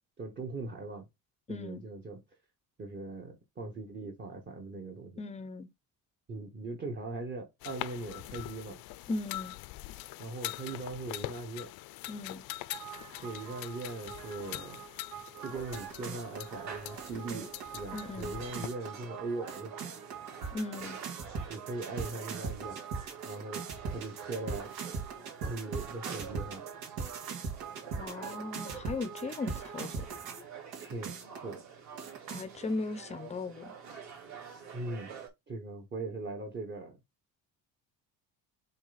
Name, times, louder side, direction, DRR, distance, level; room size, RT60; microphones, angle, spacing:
voice 1, 0.2-1.1 1.5-2.2 2.8-5.2 6.3-8.8 10.2-11.7 13.2-14.8 15.4-19.7 21.5-22.8 23.2-24.7 25.5-26.7 30.8-31.7 34.7-35.1 35.5-37.0, right 3 dB, 30° right, 1.3 m, -40 dB
voice 2, 1.5-1.8 5.2-5.7 9.1-9.5 12.1-12.4 17.9-18.4 20.5-21.0 28.0-30.2 32.3-33.8, left 3 dB, 20° left, 0.6 m, -37 dB
sound 1, 7.6-18.7, left 17 dB, 75° left, 0.6 m, -43 dB
sound 2, 12.7-30.4 30.7-31.5 32.0-32.4, right 5 dB, 85° right, 2.1 m, -41 dB
sound 3, 15.3-35.3, right 6 dB, 50° right, 2.9 m, -48 dB
7.2 x 3.4 x 4.0 m
cardioid pair, 160°, 36 cm